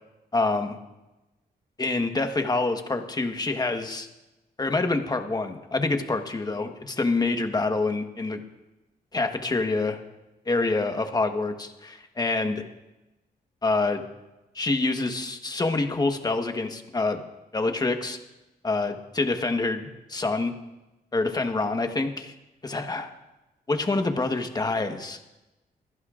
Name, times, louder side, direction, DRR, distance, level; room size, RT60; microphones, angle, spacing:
voice 1, 0.3-0.8 1.8-4.1 4.6-8.4 9.1-10.0 10.5-12.6 13.6-14.0 14.5-17.2 17.5-18.2 18.6-20.5 21.1-22.3 22.6-23.1 23.7-25.2, left 3 dB, 25° left, 6 dB, 1.2 m, -26 dB
25.5 x 11.0 x 2.5 m, 1.0 s
cardioid pair, 90°, 16 cm